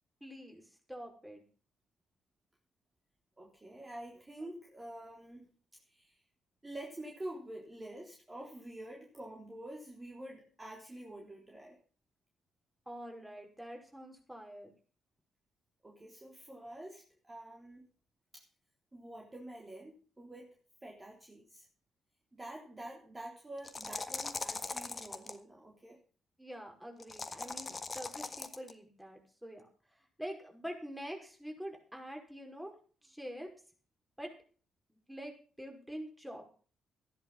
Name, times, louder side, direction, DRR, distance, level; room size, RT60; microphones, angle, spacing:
voice 1, 0.2-0.6 0.9-1.4 12.9-14.7 26.4-29.6 30.2-32.7 33.0-33.5 34.2-34.3 34.9-36.5, equal, 5° right, 2 dB, 5.4 m, -45 dB
voice 2, 3.4-5.5 5.9-6.2 6.6-11.8 15.8-17.9 18.3-18.4 18.9-20.6 20.8-21.7 22.3-26.0, right 1 dB, 20° right, -1 dB, 3.7 m, -47 dB
sound 1, 23.6-25.4 27.0-28.7, left 3 dB, 30° left, 1.5 m, -40 dB
14.0 x 10.5 x 5.7 m, 0.41 s
figure-of-eight pair, 40°, 0 cm